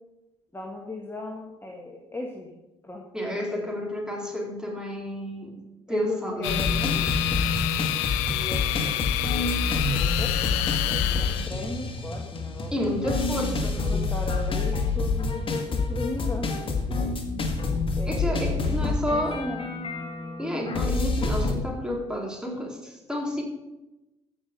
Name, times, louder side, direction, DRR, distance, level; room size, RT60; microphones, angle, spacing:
voice 1, 0.5-2.5 2.9-3.0 5.9-7.0 8.3-9.0 9.4-9.6 9.9-12.9 13.9-17.1 18.0-19.6, left 2 dB, 15° left, 0 dB, 1.9 m, -37 dB
voice 2, 3.1-5.6 5.9-6.6 12.7-14.0 18.0-19.4 20.4-23.4, equal, 5° right, -1 dB, 4.2 m, -30 dB
sound 1, 6.4-11.5, left 14 dB, 75° left, 0.5 m, -28 dB
sound 2, 6.5-21.5, left 3 dB, 35° left, 2.1 m, -28 dB
15.0 x 6.1 x 5.4 m, 0.98 s
hypercardioid pair, 55°, 15 cm